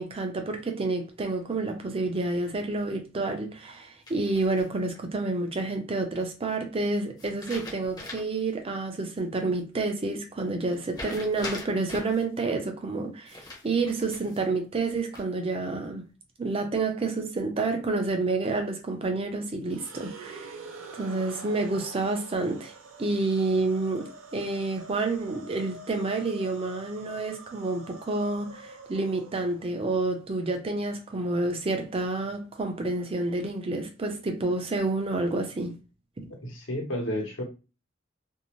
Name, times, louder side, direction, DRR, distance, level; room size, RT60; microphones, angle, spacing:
voice 1, 0.0-16.0 16.4-20.5 20.9-22.7 23.0-35.8 36.2-36.3, right 3 dB, 30° right, 0.5 m, -29 dB
sound 1, 4.1-5.0 7.2-8.4 8.8-8.9 10.9-12.2 13.3-14.4 14.9-15.5, left 2 dB, 20° left, 0.7 m, -41 dB
sound 2, 19.6-29.9, right 2 dB, 80° right, 0.5 m, -46 dB
voice 2, 36.4-37.4, equal, 75° left, 1.0 m, -31 dB
2.6 x 2.0 x 2.9 m
head